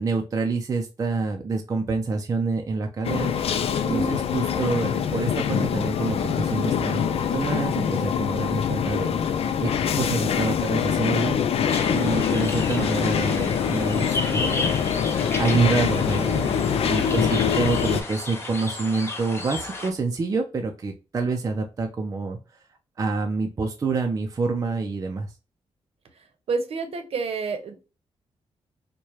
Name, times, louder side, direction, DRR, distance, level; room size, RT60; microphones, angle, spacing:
voice 1, 0.0-3.3 3.9-11.4 11.9-14.7 15.4-16.5 16.9-22.4 23.0-25.3, right 4 dB, 30° right, 3 dB, 0.5 m, -27 dB
sound 1, 3.0-18.0, left 7 dB, 65° left, 0.4 m, -24 dB
voice 2, 3.8-4.1 17.0-17.3 26.5-27.8, right 4 dB, 65° right, 7 dB, 0.8 m, -29 dB
sound 2, 11.7-19.9, left 2 dB, 20° left, 0.7 m, -34 dB
4.6 x 2.2 x 2.8 m, 0.31 s
wide cardioid pair, 170°, 11 cm